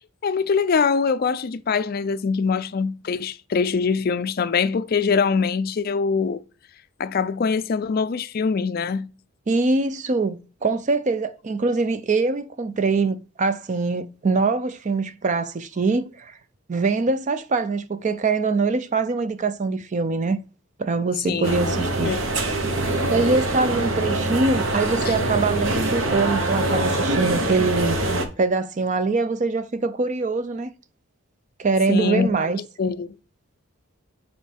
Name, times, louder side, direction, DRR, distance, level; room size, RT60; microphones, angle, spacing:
voice 1, 0.2-6.4 7.0-9.1 21.3-21.8 22.0-22.2 25.1-25.2 31.9-32.3 32.8-33.1, left 5 dB, 45° left, 0.4 m, -23 dB
voice 2, 9.5-16.4 16.7-20.4 20.8-22.1 23.1-30.7 31.6-32.6, right 3 dB, 35° right, 0.4 m, -23 dB
sound 1, 21.4-28.3, right 2 dB, 65° right, 1.0 m, -24 dB
7.6 x 4.4 x 3.4 m
head